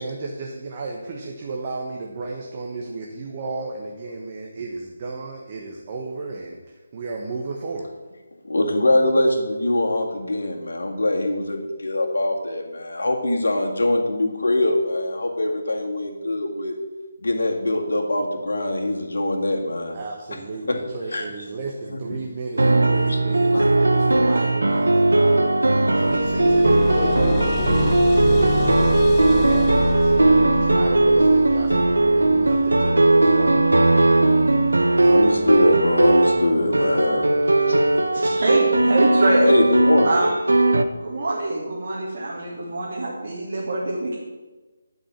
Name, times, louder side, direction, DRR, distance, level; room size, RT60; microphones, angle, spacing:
voice 1, 0.0-7.9 19.9-34.6 35.0-35.2, right 3 dB, 30° right, 0 dB, 1.2 m, -33 dB
voice 2, 8.4-16.8 17.2-20.0 20.7-20.8 21.1-21.3 21.9-22.0 23.1-23.2 23.5-23.7 35.1-37.3 37.7-37.8 39.3-40.1, left 1 dB, 65° left, 1 dB, 2.0 m, -22 dB
sound 1, 22.6-40.8, right 2 dB, 75° right, 0.8 m, -18 dB
sound 2, 25.1-25.2 25.6-36.6 37.4-37.5 38.0-38.1, left 9 dB, 25° left, 0.4 m, -32 dB
voice 3, 38.1-39.5 40.0-40.3 40.9-44.2, right 2 dB, 55° right, -5 dB, 2.3 m, -24 dB
10.0 x 5.4 x 7.3 m, 1.2 s
figure-of-eight pair, 150°, 0 cm